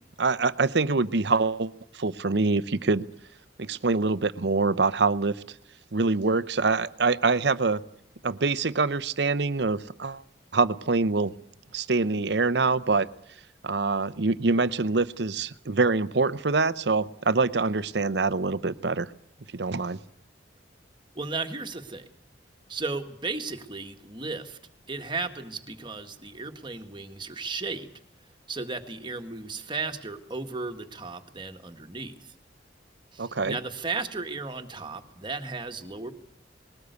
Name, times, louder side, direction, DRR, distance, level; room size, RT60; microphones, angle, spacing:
voice 1, 0.2-3.1 3.6-5.3 5.9-7.8 8.2-10.2 10.5-11.3 11.7-13.1 13.6-19.1 19.5-20.0 33.2-33.6, right 3 dB, 65° right, 15 dB, 0.8 m, -25 dB
voice 2, 21.2-22.1 22.7-24.6 24.9-27.9 28.5-32.3 33.1-36.1, right 3 dB, 25° right, 6 dB, 1.8 m, -35 dB
21.0 x 18.5 x 8.2 m, 0.75 s
head